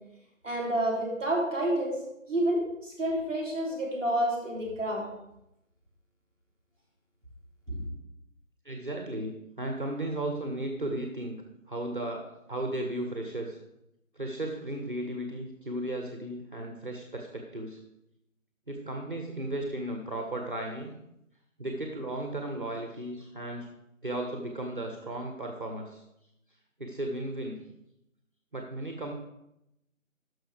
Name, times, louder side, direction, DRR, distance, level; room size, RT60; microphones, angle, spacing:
voice 1, 0.4-1.9 2.3-5.0 7.7-7.8, right 1 dB, 5° left, -13 dB, 2.1 m, -29 dB
voice 2, 8.6-11.4 11.7-13.6 14.2-17.8 18.7-20.9 21.6-23.7 24.0-26.0 26.8-27.6 28.5-29.1, right 1 dB, 40° right, 2 dB, 0.8 m, -35 dB
11.5 x 6.3 x 3.4 m, 0.86 s
figure-of-eight pair, 165°, 41 cm